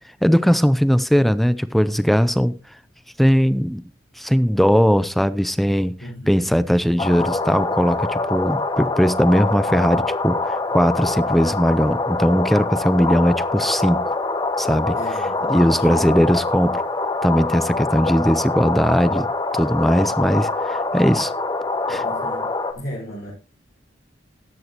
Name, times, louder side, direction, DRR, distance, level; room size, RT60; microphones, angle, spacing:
voice 1, 0.2-2.5 3.2-3.8 4.2-5.9 6.3-14.2 14.6-15.0 15.5-16.8 17.2-19.3 19.5-21.3 21.9-22.0, equal, ahead, 0.4 m, -19 dB
voice 2, 6.0-6.5 14.9-15.9 22.0-22.5 22.7-23.3, equal, 60° left, 4.4 m, -35 dB
sound 1, 7.0-22.7, left 3 dB, 20° left, 1.0 m, -24 dB
13.5 x 10.5 x 2.9 m
head